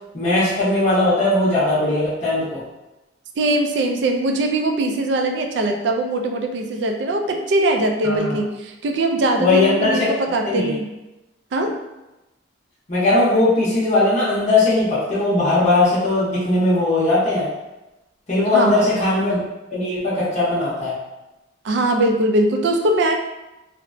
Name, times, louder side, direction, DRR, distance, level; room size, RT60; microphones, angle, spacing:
voice 1, 0.1-2.6 8.0-8.4 9.4-10.1 10.5-10.8 12.9-17.5 18.3-19.4 19.7-21.0, left 2 dB, 35° left, -9 dB, 0.6 m, -19 dB
voice 2, 3.4-10.9 11.5-11.7 18.5-18.9 21.6-23.2, right 1 dB, 65° right, 4 dB, 0.3 m, -21 dB
2.9 x 2.0 x 2.5 m, 1.0 s
head